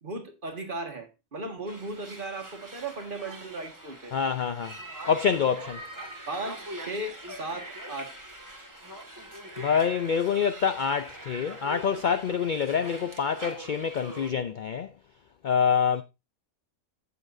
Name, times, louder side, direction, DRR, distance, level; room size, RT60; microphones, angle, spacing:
voice 1, 0.0-4.2 6.3-8.2, right 2 dB, 35° right, 1.9 m, -36 dB
sound 1, 1.7-14.3, right 1 dB, 15° right, 1.9 m, -43 dB
voice 2, 4.1-4.7 5.1-5.8 9.6-14.9 15.4-16.0, left 7 dB, 70° left, 0.4 m, -26 dB
15.0 x 6.9 x 2.6 m
omnidirectional pair, 1.5 m